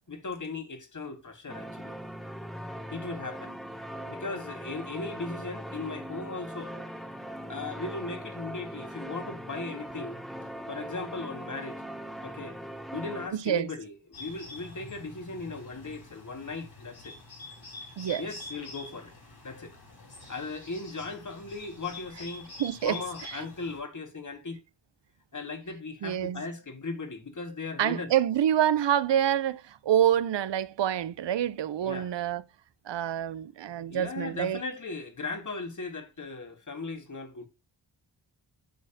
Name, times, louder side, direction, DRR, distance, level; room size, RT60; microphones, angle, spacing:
voice 1, 0.1-2.0 2.9-3.6 4.1-6.9 7.5-10.2 10.7-11.8 12.2-12.6 12.9-17.2 18.2-19.1 19.4-19.8 20.3-22.5 22.8-24.6 25.3-28.1 31.8-32.1 33.8-37.5, left 3 dB, 45° left, 1.6 m, -37 dB
sound 1, 1.5-13.3, equal, ahead, 0.8 m, -40 dB
voice 2, 13.3-13.7 18.0-18.2 22.6-23.4 26.0-26.4 27.8-32.4 32.9-34.6, right 10 dB, 80° right, 0.6 m, -27 dB
Bird, 14.1-23.8, left 3 dB, 60° left, 5.2 m, -46 dB
9.3 x 6.4 x 2.7 m
wide cardioid pair, 130°, 42 cm